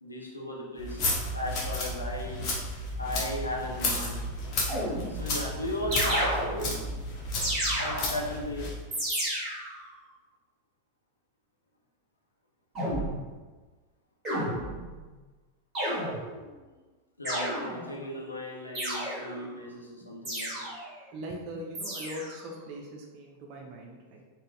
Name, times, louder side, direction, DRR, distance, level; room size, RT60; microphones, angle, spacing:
voice 1, 0.0-2.5 3.0-4.2 5.1-6.7 7.7-8.7 17.2-20.7, left 1 dB, 80° left, -3 dB, 0.6 m, -36 dB
sound 1, 0.8-8.8, left 1 dB, 35° left, 0.7 m, -33 dB
sound 2, 4.7-5.3 5.9-6.8 7.4-8.3 8.9-9.8 12.7-13.2 14.2-15.0 15.7-16.4 17.2-18.0 18.7-19.4 20.2-20.9 21.7-22.4, equal, 20° right, 1.5 m, -32 dB
voice 2, 21.1-24.2, equal, 40° right, 0 dB, 0.4 m, -41 dB
3.8 x 2.1 x 2.6 m, 1.3 s
figure-of-eight pair, 90°, 0 cm